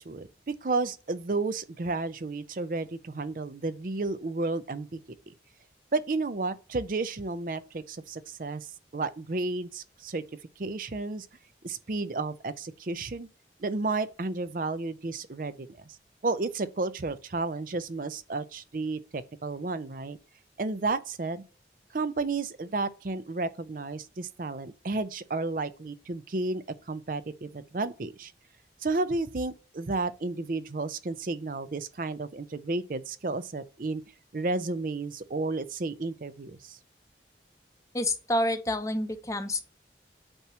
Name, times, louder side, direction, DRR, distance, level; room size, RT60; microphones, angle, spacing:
voice 1, 0.0-5.0 5.9-8.7 8.9-10.2 10.6-11.3 11.6-13.3 13.6-16.0 16.2-20.2 20.6-21.4 21.9-28.3 28.8-34.0 34.3-36.8, right 3 dB, 50° right, 0.5 m, -32 dB
voice 2, 37.9-39.7, left 1 dB, 20° left, 0.7 m, -28 dB
8.8 x 2.9 x 6.0 m
head